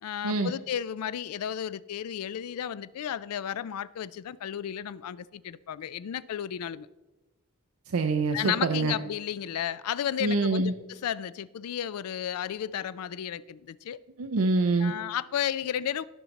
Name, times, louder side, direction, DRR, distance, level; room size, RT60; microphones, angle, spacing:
voice 1, 0.0-6.9 8.3-14.0 14.8-16.0, left 9 dB, 85° left, 0.4 m, -33 dB
voice 2, 7.9-8.9 10.2-10.7 14.2-14.9, right 3 dB, 70° right, 0.6 m, -25 dB
15.5 x 5.8 x 4.0 m
head